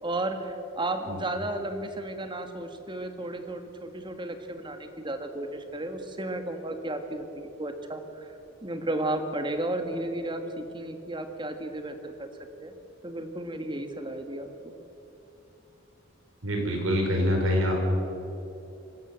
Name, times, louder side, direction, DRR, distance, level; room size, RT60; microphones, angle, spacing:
voice 1, 0.0-12.3 12.6-12.7 13.0-14.7, right 1 dB, 25° right, 6 dB, 1.6 m, -33 dB
voice 2, 16.4-17.9, equal, 85° right, 1 dB, 5.1 m, -25 dB
24.5 x 13.5 x 8.0 m, 2.9 s
head